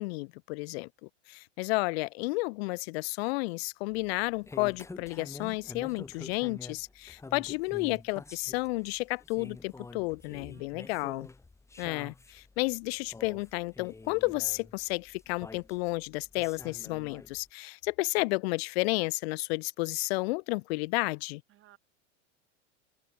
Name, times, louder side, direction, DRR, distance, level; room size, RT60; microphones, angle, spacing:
voice 1, 0.0-11.3 11.8-21.4, left 25 dB, 55° left, 1.1 m, -32 dB
sound 1, 3.9-17.5, left 3 dB, 10° left, 1.9 m, -48 dB
voice 2, 10.5-11.1 21.5-21.8, right 14 dB, 35° right, 7.5 m, -61 dB
supercardioid pair, 140°, 36 cm